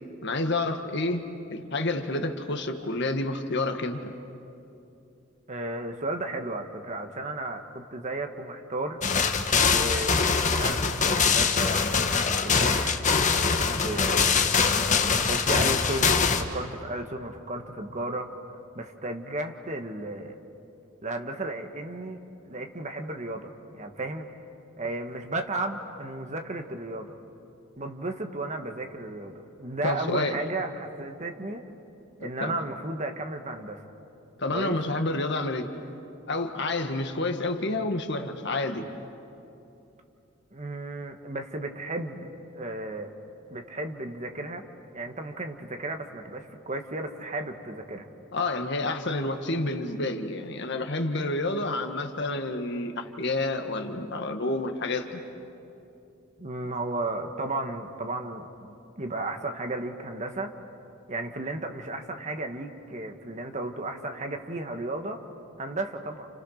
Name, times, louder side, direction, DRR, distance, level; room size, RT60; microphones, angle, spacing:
voice 1, 0.2-1.2 1.5-4.1 29.8-30.4 32.4-32.6 34.4-35.7 36.3-38.9 48.3-55.2, left 2 dB, 55° left, 6 dB, 1.7 m, -29 dB
voice 2, 5.5-9.0 9.7-14.4 15.1-18.3 18.7-20.4 21.0-24.3 24.8-27.2 27.8-31.6 32.2-33.8 34.5-34.8 40.5-43.1 43.5-44.6 44.9-48.1 56.4-60.5 61.1-65.2 65.6-66.3, right 2 dB, 35° right, 5 dB, 1.6 m, -34 dB
sound 1, 9.0-16.4, left 5 dB, 35° left, 1.4 m, -23 dB
30.0 x 29.5 x 6.6 m, 2.8 s
head